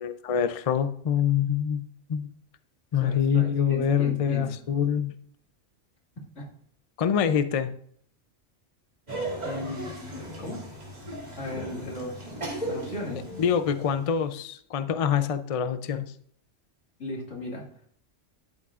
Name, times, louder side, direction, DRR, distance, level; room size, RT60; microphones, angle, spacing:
voice 1, 0.0-1.8 2.1-2.3 2.9-5.1 7.0-7.7 13.4-16.0, left 8 dB, 55° left, 0.4 m, -25 dB
voice 2, 2.9-4.5 6.4-6.5 9.4-9.9 10.4-10.6 11.4-12.3 12.6-13.3 17.0-17.6, left 1 dB, 80° left, 2.5 m, -36 dB
Laughter, 9.1-14.2, right 1 dB, 35° right, 2.3 m, -36 dB
12.0 x 8.4 x 2.5 m
omnidirectional pair, 1.3 m